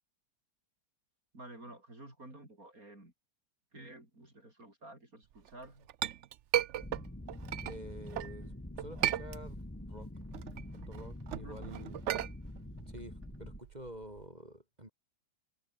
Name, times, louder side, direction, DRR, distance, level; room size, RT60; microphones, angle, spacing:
voice 1, 1.3-3.1 3.7-5.9 11.4-11.8, right 2 dB, 50° right, 7.7 m, -52 dB
Chink clink, 5.5-8.3 8.8-9.8 10.2-14.3, right 12 dB, 80° right, 0.6 m, -36 dB
sound 1, 6.8-13.6, left 1 dB, 5° left, 1.5 m, -45 dB
voice 2, 7.7-9.6 9.9-10.1 10.9-12.0 12.9-14.9, right 1 dB, 20° right, 5.4 m, -49 dB
omnidirectional pair, 2.0 m